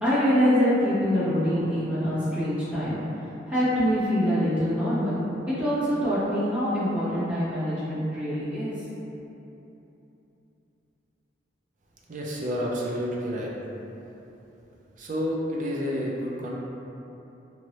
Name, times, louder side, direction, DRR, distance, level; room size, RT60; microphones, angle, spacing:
voice 1, 0.0-3.0 3.5-5.2 5.5-8.8, equal, 10° right, -13 dB, 1.0 m, -24 dB
voice 2, 12.1-13.5 15.0-16.5, equal, 45° right, -3 dB, 0.5 m, -29 dB
3.0 x 2.6 x 3.0 m, 3.0 s
head